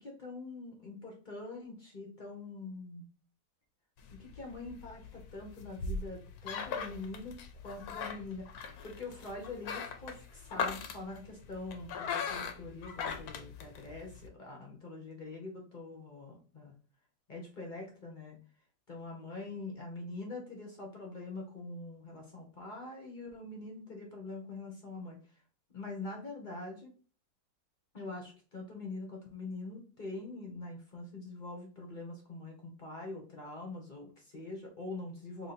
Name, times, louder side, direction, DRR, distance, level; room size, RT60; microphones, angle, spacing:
voice 1, 0.0-3.1 4.1-7.4 7.6-16.7 17.3-18.4 18.9-25.2 25.7-26.9 27.9-35.5, left 2 dB, 40° left, 0 dB, 0.7 m, -44 dB
sound 1, 4.0-14.3, left 5 dB, 70° left, 1.0 m, -40 dB
3.1 x 2.8 x 4.0 m, 0.40 s
omnidirectional pair, 1.9 m